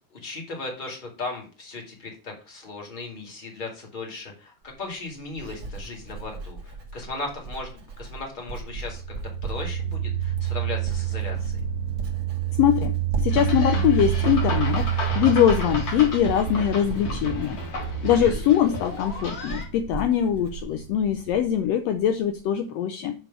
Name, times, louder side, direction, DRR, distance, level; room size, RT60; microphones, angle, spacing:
voice 1, 0.1-9.0 9.4-11.6 17.9-18.3, left 3 dB, 20° left, 0 dB, 1.8 m, -37 dB
Writing, 4.6-21.7 22.0-22.4, right 3 dB, 45° right, 1.6 m, -37 dB
sound 1, 8.6-21.4, right 10 dB, 80° right, 1.9 m, -29 dB
voice 2, 12.6-14.9 15.1-17.6 18.0-23.1, left 10 dB, 80° left, 7 dB, 1.5 m, -22 dB
sound 2, 13.3-19.7, left 1 dB, 55° left, 2.8 m, -32 dB
7.7 x 3.4 x 6.3 m, 0.36 s
omnidirectional pair, 3.4 m